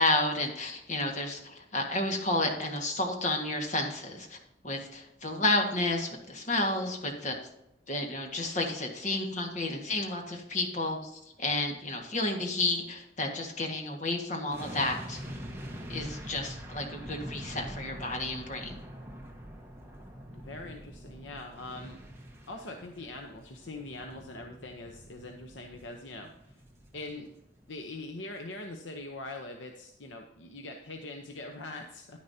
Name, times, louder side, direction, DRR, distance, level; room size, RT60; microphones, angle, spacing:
voice 1, 0.0-4.4 4.6-7.3 7.9-15.2 15.9-18.8, left 2 dB, 40° left, 2 dB, 1.7 m, -31 dB
sound 1, 14.5-27.7 27.9-28.1, equal, 15° right, 1.3 m, -45 dB
voice 2, 20.3-22.0 22.5-26.6 26.9-27.3 27.7-32.2, left 2 dB, 75° left, 3 dB, 0.9 m, -42 dB
10.5 x 9.9 x 2.8 m, 0.85 s
head